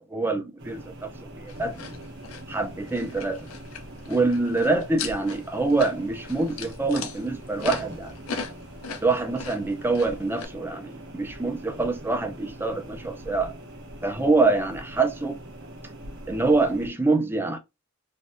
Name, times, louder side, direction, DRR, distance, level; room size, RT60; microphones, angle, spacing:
voice 1, 0.1-1.1 1.4-1.8 2.5-3.4 4.1-8.1 9.0-13.5 14.0-15.4 16.3-17.6, right 3 dB, 10° right, 0.5 m, -25 dB
sound 1, 0.6-16.9, right 1 dB, 60° right, 0.9 m, -43 dB
sound 2, 1.5-10.4, left 4 dB, 75° left, 0.6 m, -39 dB
3.4 x 2.5 x 2.5 m
head